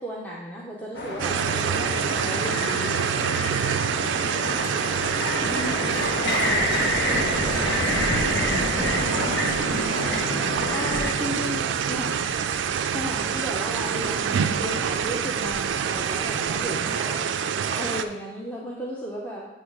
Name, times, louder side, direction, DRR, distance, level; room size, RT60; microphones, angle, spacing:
voice 1, 0.0-3.0 7.4-7.9 10.7-12.1 12.9-16.9 17.8-19.5, equal, 10° left, -4 dB, 0.6 m, -34 dB
sound 1, 0.9-11.1, left 1 dB, 65° left, 1.1 m, -28 dB
sound 2, 1.2-18.0, right 7 dB, 85° right, 0.3 m, -26 dB
voice 2, 2.0-2.7 4.3-6.8 7.3-8.0 8.3-10.3 14.0-14.5 16.9-17.2 17.6-17.9, left 1 dB, 35° left, -3 dB, 1.5 m, -44 dB
sound 3, 7.4-16.7, equal, 5° right, 1.1 m, -46 dB
8.5 x 3.1 x 4.8 m, 1.1 s
head